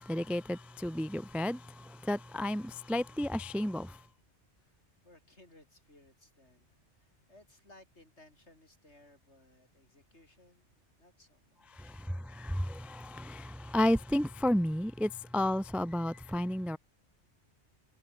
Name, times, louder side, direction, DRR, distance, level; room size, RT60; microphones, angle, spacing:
voice 1, 0.0-4.0 11.8-16.8, left 1 dB, ahead, 0.4 m, -32 dB
voice 2, 5.0-10.7 11.0-12.0, left 1 dB, 70° left, 7.1 m, -61 dB
omnidirectional pair, 1.2 m